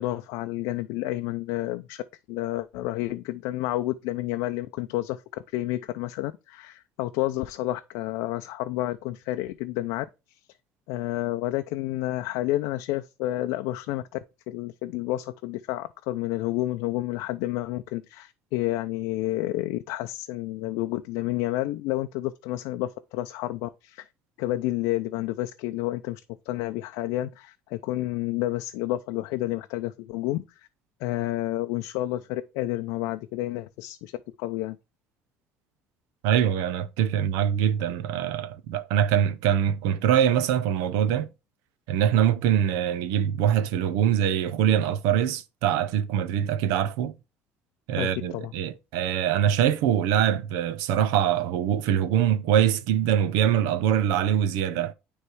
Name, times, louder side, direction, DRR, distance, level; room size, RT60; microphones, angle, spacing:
voice 1, 0.0-2.0 2.3-10.1 10.9-14.2 14.5-24.1 24.4-26.2 26.5-30.4 31.0-34.1 34.4-34.8 48.0-48.5, left 16 dB, 85° left, 0.5 m, -30 dB
voice 2, 36.2-41.3 41.9-47.1 47.9-54.9, right 9 dB, 85° right, 0.7 m, -23 dB
9.7 x 3.2 x 4.6 m
cardioid pair, 105°, 5 cm